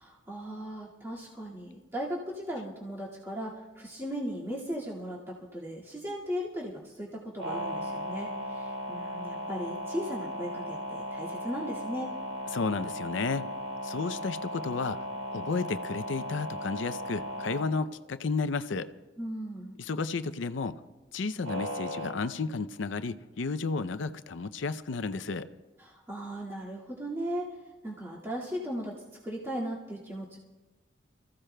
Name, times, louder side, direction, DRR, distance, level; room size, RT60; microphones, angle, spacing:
voice 1, 0.0-12.1 19.2-19.7 25.8-27.5 27.8-30.4, equal, 15° right, -7 dB, 2.0 m, -37 dB
sound 1, 7.4-17.7 21.4-22.1, equal, 80° right, 3.5 m, -36 dB
voice 2, 12.5-13.5 13.8-15.1 15.3-18.9 19.8-20.8 21.1-25.5, left 4 dB, 80° left, 13 dB, 0.5 m, -32 dB
28.0 x 15.0 x 2.2 m, 1.1 s
head